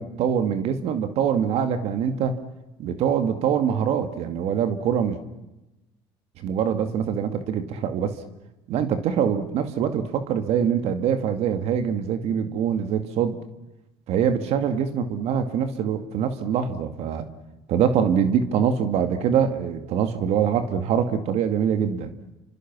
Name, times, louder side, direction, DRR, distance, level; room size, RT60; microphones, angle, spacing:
voice 1, 0.0-2.4 2.8-5.2 6.4-8.2 8.7-13.4 14.1-17.3 17.7-22.1, right 8 dB, 65° right, 8 dB, 2.3 m, -24 dB
29.5 x 25.0 x 6.3 m, 0.99 s
supercardioid pair, 85°, 11 cm